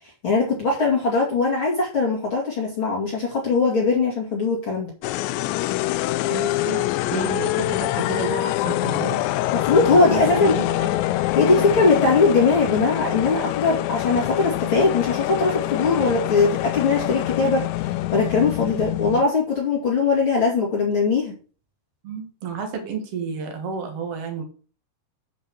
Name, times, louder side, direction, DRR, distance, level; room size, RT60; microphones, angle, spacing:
voice 1, 0.2-4.9 9.5-10.6 11.3-21.3, left 4 dB, 40° left, -4 dB, 2.1 m, -20 dB
sound 1, 5.0-19.3, left 15 dB, 85° left, 2.6 m, -25 dB
voice 2, 6.3-9.2 9.9-11.2 11.5-11.6 22.0-24.4, right 5 dB, 85° right, 4 dB, 1.3 m, -31 dB
8.5 x 5.3 x 6.3 m, 0.39 s
omnidirectional pair, 5.6 m